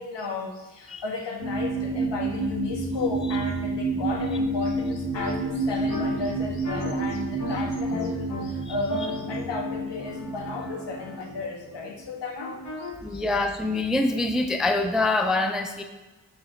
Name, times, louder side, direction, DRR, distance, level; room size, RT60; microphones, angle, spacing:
voice 1, 0.0-13.2, left 3 dB, 75° left, 1 dB, 1.6 m, -34 dB
sound 1, 1.4-11.4 12.0-12.1, right 2 dB, 30° right, 1.3 m, -29 dB
sound 2, 5.1-5.3 5.9-6.1 6.6-6.9 7.4-7.6 7.9-8.4 8.9-11.1 12.4-12.9, left 3 dB, 40° left, 1.4 m, -36 dB
voice 2, 13.0-15.8, left 2 dB, ahead, 6 dB, 0.4 m, -25 dB
8.4 x 5.1 x 5.7 m, 1.2 s
wide cardioid pair, 165°, 43 cm